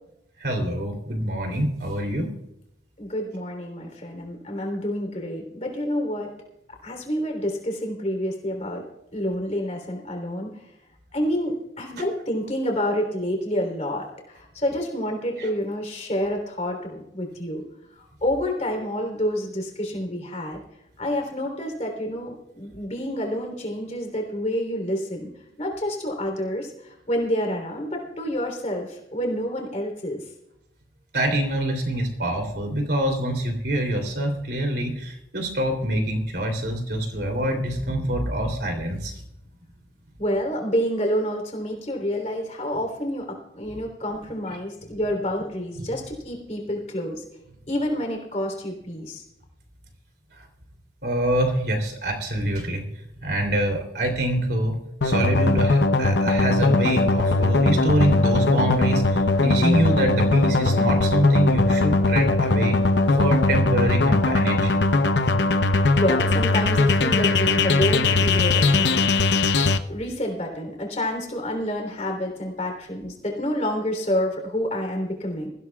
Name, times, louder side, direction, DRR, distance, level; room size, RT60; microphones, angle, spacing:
voice 1, 0.4-2.3 12.0-12.1 15.4-15.5 31.1-39.1 45.8-45.9 51.0-52.8 53.2-62.8 63.2-64.8, right 1 dB, 65° right, 3 dB, 3.2 m, -25 dB
voice 2, 3.0-6.3 6.8-8.8 9.1-10.5 11.1-17.6 18.0-20.6 21.0-25.3 25.6-30.2 40.2-47.2 47.7-49.2 66.0-69.0 69.9-75.5, equal, 40° left, 2 dB, 3.5 m, -28 dB
sound 1, 55.0-69.8, left 3 dB, 80° left, 0.8 m, -20 dB
23.5 x 15.5 x 2.4 m, 0.83 s
head